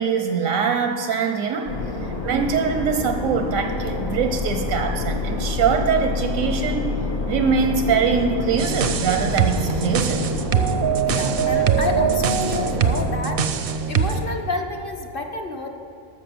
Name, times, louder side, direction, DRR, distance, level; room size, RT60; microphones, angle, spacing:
voice 1, 0.0-1.7 2.0-6.9 7.3-10.2, right 6 dB, 85° right, 6 dB, 1.1 m, -23 dB
sound 1, 1.7-13.1, left 3 dB, 80° left, 2.2 m, -28 dB
sound 2, 8.6-14.3, right 7 dB, 55° right, 0.7 m, -22 dB
voice 2, 11.1-13.4 13.9-15.7, left 3 dB, 45° left, 4 dB, 1.1 m, -29 dB
13.0 x 6.6 x 6.9 m, 2.8 s
omnidirectional pair, 1.4 m